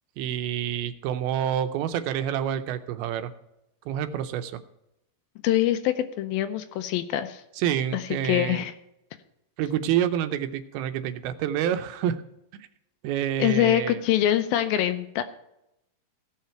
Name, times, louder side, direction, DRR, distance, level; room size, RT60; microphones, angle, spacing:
voice 1, 0.2-3.3 3.9-4.5 7.6-8.6 9.6-12.2 12.5-12.7 13.0-14.0, right 10 dB, 85° right, 9 dB, 2.6 m, -28 dB
voice 2, 5.4-7.4 7.9-8.7 13.4-15.2, left 12 dB, 80° left, 10 dB, 2.4 m, -24 dB
17.0 x 5.8 x 4.4 m, 0.86 s
omnidirectional pair, 4.4 m